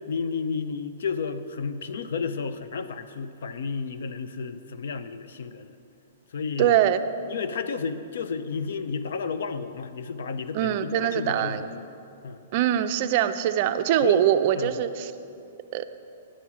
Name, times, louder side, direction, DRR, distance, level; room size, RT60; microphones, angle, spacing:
voice 1, 0.1-5.7 6.3-6.8 7.3-11.8 12.2-12.4 14.0-14.2 14.5-14.8, left 5 dB, 75° left, 11 dB, 0.5 m, -32 dB
voice 2, 6.6-7.0 10.5-11.6 12.5-15.1 15.7-15.8, right 11 dB, 45° right, 10 dB, 0.4 m, -23 dB
10.0 x 7.0 x 6.0 m, 2.6 s
hypercardioid pair, 150°, 0 cm